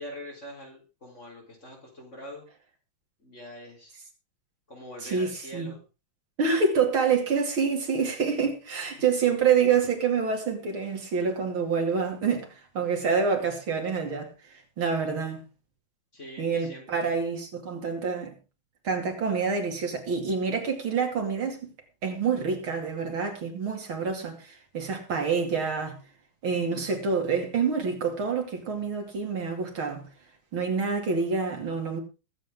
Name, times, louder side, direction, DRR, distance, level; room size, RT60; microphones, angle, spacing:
voice 1, 0.0-2.4 3.2-4.0 4.7-5.8 16.1-17.0, left 1 dB, 35° left, 4.6 m, -43 dB
voice 2, 5.0-5.7 6.4-12.5 12.8-14.3 14.8-15.4 16.4-18.3 18.8-21.7 22.0-26.0 26.4-30.1 30.5-32.0, right 5 dB, 85° right, 3.5 m, -27 dB
21.0 x 7.9 x 3.7 m
omnidirectional pair, 2.2 m